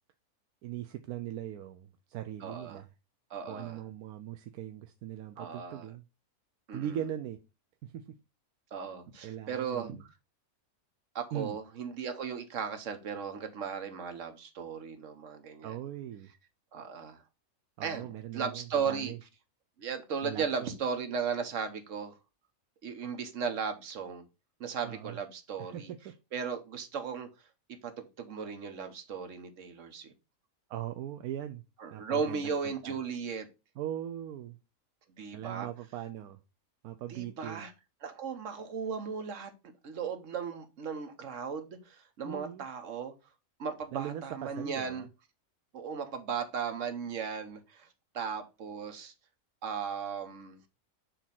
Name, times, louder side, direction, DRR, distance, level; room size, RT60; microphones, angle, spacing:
voice 1, 0.6-2.9 3.5-6.0 6.7-7.4 7.8-8.0 9.2-10.0 11.3-11.6 15.6-16.3 17.8-19.2 20.2-20.8 24.8-25.2 25.6-26.1 30.7-31.6 31.9-33.0 33.8-34.6 35.3-36.4 36.8-37.6 42.2-42.6 43.9-45.1, right 11 dB, 90° right, 1.1 m, -40 dB
voice 2, 2.4-2.8 3.3-3.8 5.4-5.9 6.7-7.0 8.7-10.1 11.1-15.8 16.7-17.2 17.8-19.1 19.8-22.1 22.8-24.2 24.6-25.9 26.3-27.3 27.8-30.1 31.8-33.5 35.2-35.7 37.1-37.7 38.0-39.5 39.8-43.1 43.6-45.1 45.7-47.9 48.1-49.1 49.6-50.6, right 6 dB, 60° right, 1.3 m, -36 dB
6.8 x 2.9 x 5.8 m
omnidirectional pair, 1.5 m